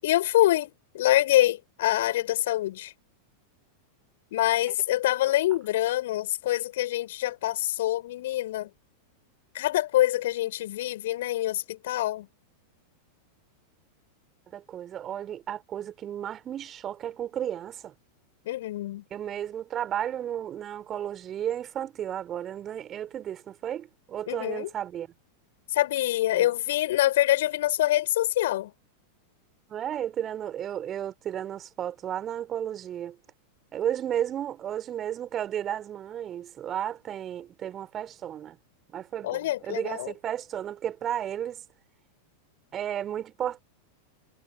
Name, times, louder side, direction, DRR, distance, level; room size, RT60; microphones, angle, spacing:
voice 1, 0.0-2.9 4.3-8.7 9.5-12.3 18.4-19.0 24.3-24.7 25.7-28.7 39.2-40.1, left 15 dB, 55° left, 6.4 m, -25 dB
voice 2, 14.5-17.9 19.1-25.1 26.3-26.5 29.7-33.2 33.7-38.6 38.9-41.6 42.7-43.6, right 10 dB, 30° right, 5.3 m, -33 dB
figure-of-eight pair, 90°, 0 cm